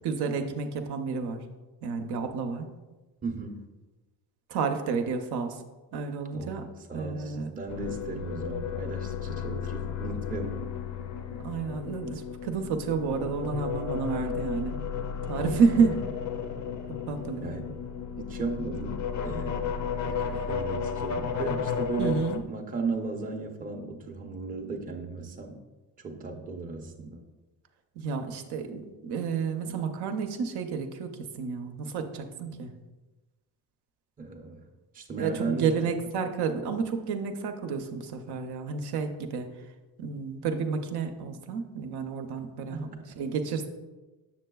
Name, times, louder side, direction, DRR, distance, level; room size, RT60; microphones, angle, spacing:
voice 1, 0.0-1.4 1.8-2.7 4.5-5.6 5.9-6.6 6.9-7.5 8.3-8.5 11.4-14.8 15.3-16.0 17.1-17.5 22.0-22.4 28.0-32.7 35.2-39.5 40.0-42.9 43.2-43.7, right 5 dB, 75° right, 5 dB, 0.7 m, -30 dB
voice 2, 3.2-3.6 6.3-10.7 15.3-16.0 17.4-17.8 18.2-19.7 20.0-25.6 26.0-27.2 34.2-34.6 34.9-35.8 42.7-43.1, right 3 dB, 20° right, 2 dB, 0.6 m, -36 dB
sound 1, 7.7-22.4, left 7 dB, 45° left, 0.5 m, -33 dB
7.3 x 6.5 x 2.3 m, 1.2 s
cardioid pair, 145°, 39 cm